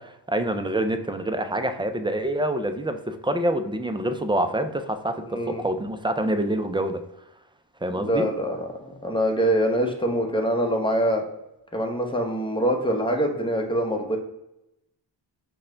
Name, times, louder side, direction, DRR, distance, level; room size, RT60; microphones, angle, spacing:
voice 1, 0.0-5.2 5.5-7.0 7.8-8.3, right 1 dB, 10° right, 7 dB, 0.3 m, -26 dB
voice 2, 5.3-5.6 8.0-11.2 11.7-14.2, equal, 10° left, 2 dB, 0.8 m, -24 dB
5.4 x 2.3 x 3.7 m, 0.86 s
cardioid pair, 95°, 44 cm